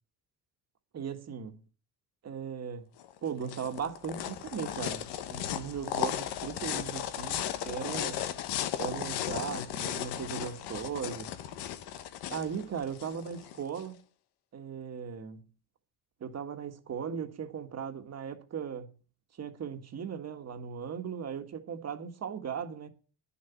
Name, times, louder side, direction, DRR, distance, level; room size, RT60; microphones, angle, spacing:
voice 1, 0.9-1.6 2.2-2.8 3.2-8.3 8.8-11.3 12.3-14.0 14.5-15.4 16.2-18.9 19.4-22.9, right 7 dB, 40° right, 1.7 m, -38 dB
sound 1, 3.0-13.9, left 11 dB, 80° left, 1.2 m, -36 dB
10.5 x 7.0 x 7.1 m
cardioid pair, 115°, 39 cm